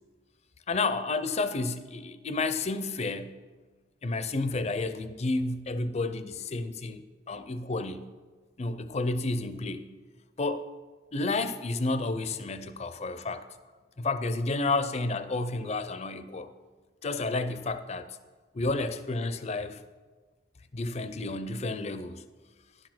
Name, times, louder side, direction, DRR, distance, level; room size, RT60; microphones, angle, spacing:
voice 1, 0.7-3.4 4.0-8.1 8.6-9.9 10.4-10.6 11.1-13.4 14.0-16.5 17.0-18.2 18.5-19.8 20.7-22.2, left 3 dB, 35° left, 0.5 m, -31 dB
11.0 x 6.4 x 6.0 m
head